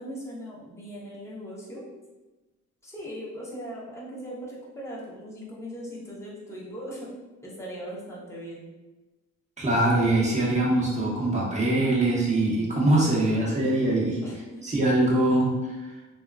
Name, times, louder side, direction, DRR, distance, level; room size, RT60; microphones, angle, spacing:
voice 1, 0.0-1.9 2.8-7.1 7.4-8.7 14.2-14.6, equal, 10° left, -6 dB, 0.8 m, -39 dB
voice 2, 9.6-14.2 14.6-15.9, right 1 dB, 25° right, -6 dB, 1.0 m, -23 dB
2.7 x 2.4 x 2.3 m, 1.1 s
cardioid pair, 90°, 30 cm